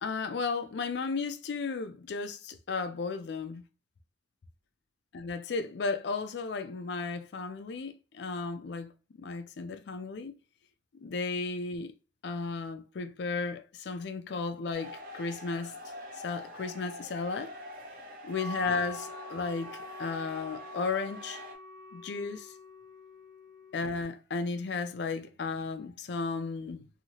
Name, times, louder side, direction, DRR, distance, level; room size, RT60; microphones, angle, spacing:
voice 1, 0.0-3.6 5.1-8.9 9.2-10.3 11.0-11.9 12.2-15.7 16.2-17.5 18.2-21.4 21.9-22.5 23.7-26.9, left 4 dB, 65° left, 0.4 m, -34 dB
sound 1, 14.7-21.5, left 1 dB, 50° right, 0.7 m, -45 dB
Wind instrument woodwind instrument, 18.3-24.2, left 1 dB, 20° left, 0.9 m, -46 dB
2.8 x 2.7 x 2.8 m
head